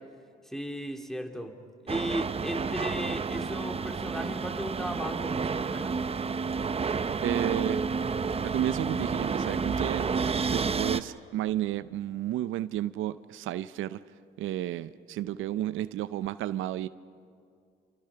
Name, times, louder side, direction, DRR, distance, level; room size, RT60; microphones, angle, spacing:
voice 1, 0.5-1.5 1.8-5.9, equal, ahead, 4 dB, 2.4 m, -35 dB
sound 1, 1.9-11.0, right 5 dB, 30° right, 0.8 m, -30 dB
voice 2, 7.2-7.8 8.4-10.1 10.5-14.0 14.4-16.9, right 13 dB, 85° right, 14 dB, 0.6 m, -32 dB
28.0 x 27.5 x 5.8 m, 2.3 s
cardioid pair, 90°, 20 cm